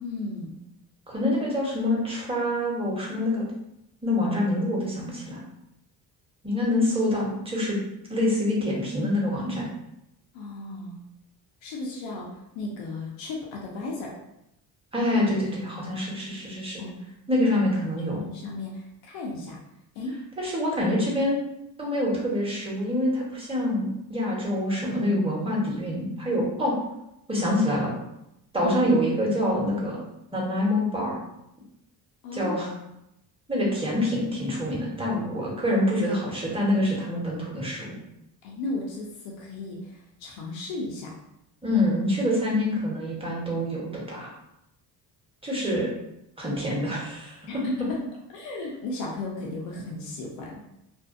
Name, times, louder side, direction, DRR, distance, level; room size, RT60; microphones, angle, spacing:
voice 1, 0.0-0.5 10.3-11.0 11.6-12.3 12.5-14.2 16.8-17.1 18.1-19.6 20.0-20.2 28.6-28.7 32.2-32.5 38.4-41.1 47.5-48.0 48.3-50.6, left 2 dB, 90° left, -2 dB, 0.6 m, -35 dB
voice 2, 1.1-3.4 4.0-5.4 6.4-7.8 8.1-9.7 14.9-16.8 17.3-18.2 20.4-21.4 21.8-26.7 27.3-27.9 28.5-30.0 30.3-31.2 32.3-32.7 33.5-38.0 41.6-44.3 45.4-45.9 46.4-47.6, left 1 dB, 10° right, -4 dB, 1.0 m, -26 dB
2.5 x 2.1 x 2.5 m, 0.84 s
cardioid pair, 70°, 44 cm